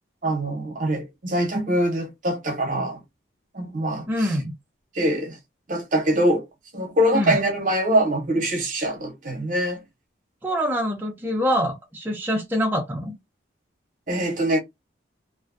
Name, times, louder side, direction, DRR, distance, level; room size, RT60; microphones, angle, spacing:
voice 1, 0.2-3.0 3.5-4.4 4.9-5.4 5.7-6.5 6.7-9.8 14.1-14.6, right 1 dB, 45° right, 0.7 m, -23 dB
voice 2, 4.1-4.5 7.1-7.4 10.4-13.2, equal, 10° right, 0.4 m, -25 dB
2.5 x 2.2 x 2.4 m
head